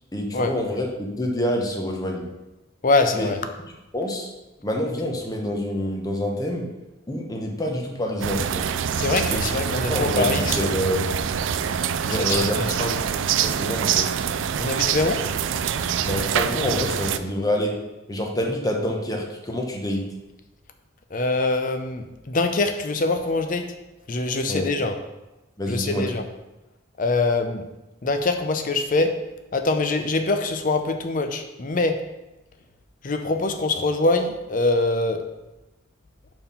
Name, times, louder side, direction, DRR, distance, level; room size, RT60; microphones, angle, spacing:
voice 1, 0.1-2.3 3.1-3.3 3.9-4.3 4.6-6.7 7.1-8.7 9.3-9.5 9.9-11.1 12.0-14.1 16.0-17.7 18.1-20.0 24.5-24.7 25.6-26.1, left 1 dB, 20° left, 1 dB, 0.9 m, -27 dB
voice 2, 2.8-3.4 9.0-10.6 12.2-13.0 14.6-15.2 21.1-23.7 24.1-24.9 25.7-26.2 27.0-27.6 28.0-29.1 29.5-32.0 33.0-35.2, left 3 dB, 40° left, 7 dB, 0.6 m, -23 dB
sound 1, 8.2-17.2, right 8 dB, 70° right, 0.3 m, -25 dB
5.4 x 4.6 x 5.5 m, 1.0 s
head